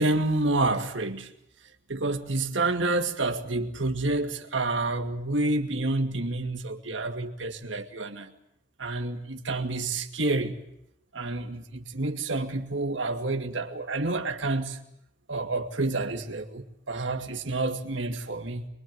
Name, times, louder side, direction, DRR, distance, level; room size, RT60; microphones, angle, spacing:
voice 1, 0.0-1.3 1.9-8.3 8.8-10.6 11.1-14.8 15.3-18.7, right 2 dB, 90° right, 2.3 m, -29 dB
23.5 x 23.0 x 9.4 m
head